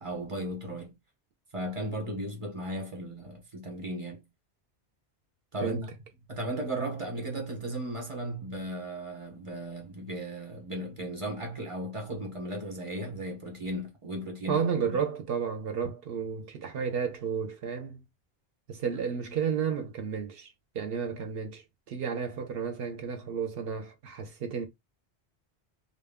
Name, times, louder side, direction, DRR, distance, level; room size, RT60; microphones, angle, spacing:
voice 1, 0.0-0.9 1.5-4.2 5.5-5.8 6.3-14.6, right 1 dB, 30° right, 0.8 m, -36 dB
voice 2, 5.6-5.9 14.5-18.0 18.7-24.7, right 6 dB, 65° right, 0.7 m, -32 dB
2.1 x 2.0 x 3.4 m
omnidirectional pair, 1.1 m